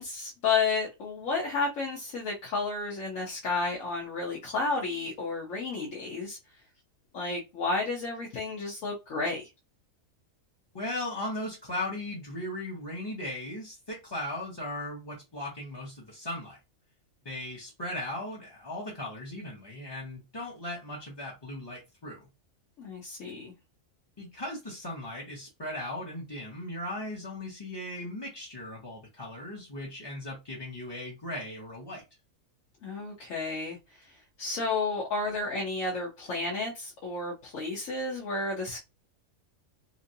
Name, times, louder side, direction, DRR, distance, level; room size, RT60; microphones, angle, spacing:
voice 1, 0.0-6.4 7.1-9.5 22.8-23.5 32.8-38.8, left 3 dB, 75° left, 1.2 m, -32 dB
voice 2, 10.7-16.6 17.2-22.3 24.2-32.0, left 1 dB, 25° left, 0.6 m, -37 dB
3.0 x 2.6 x 2.7 m
omnidirectional pair, 1.4 m